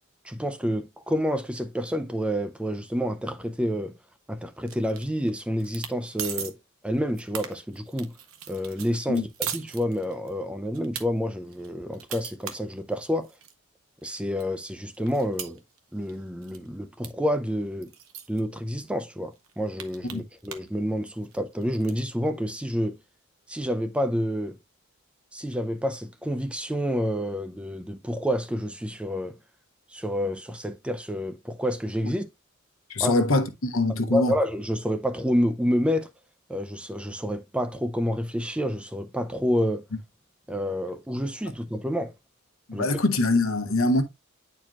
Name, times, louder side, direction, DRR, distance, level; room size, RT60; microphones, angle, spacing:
voice 1, 0.2-3.9 4.3-6.5 6.8-8.1 8.5-9.3 9.5-13.3 14.0-15.6 15.9-17.9 18.3-23.0 23.5-24.6 25.3-29.4 29.9-32.3 33.0-33.1 34.1-36.1 36.5-39.8 40.5-42.1 42.7-42.9, equal, 5° right, 0.4 m, -28 dB
sound 1, 4.7-5.3 5.6-5.9 6.2-6.5 6.9-10.3 10.7-11.0 11.5-13.5 14.0-14.1 14.4-16.2 16.4-16.7 17.0-17.1 17.3-17.4 17.8-18.4 19.0-19.1 19.3-20.7 21.0-22.0, right 8 dB, 75° right, 0.8 m, -38 dB
voice 2, 32.9-34.3 42.7-44.0, left 2 dB, 75° left, 1.0 m, -23 dB
8.9 x 4.4 x 2.4 m
head